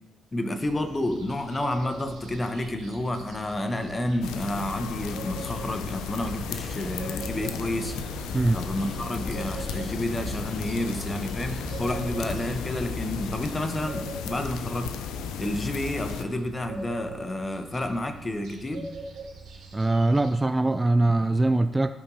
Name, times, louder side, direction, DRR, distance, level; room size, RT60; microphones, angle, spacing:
voice 1, 0.3-7.9 8.5-14.9 15.4-18.9, left 1 dB, 25° left, 7 dB, 1.0 m, -30 dB
sound 1, 0.6-20.3, right 3 dB, 70° right, 2.2 m, -44 dB
sound 2, 4.2-16.2, left 7 dB, 75° left, 0.5 m, -35 dB
sound 3, 6.2-13.6, left 1 dB, 55° left, 1.4 m, -38 dB
voice 2, 19.7-21.9, right 2 dB, 20° right, 10 dB, 0.4 m, -22 dB
14.5 x 5.3 x 2.8 m, 1.1 s
hypercardioid pair, 50°, 0 cm